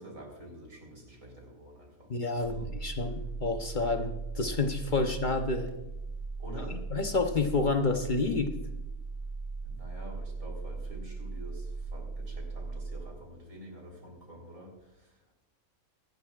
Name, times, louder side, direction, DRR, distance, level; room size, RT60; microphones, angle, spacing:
voice 1, 0.0-2.1 2.3-2.7 6.4-6.9 9.6-15.2, equal, 60° right, 0 dB, 4.2 m, -47 dB
voice 2, 2.1-5.7 6.9-8.5, left 3 dB, 40° left, 5 dB, 0.9 m, -29 dB
sound 1, 2.4-13.0, right 3 dB, 85° right, 2.4 m, -38 dB
24.0 x 11.0 x 2.4 m, 0.96 s
omnidirectional pair, 1.6 m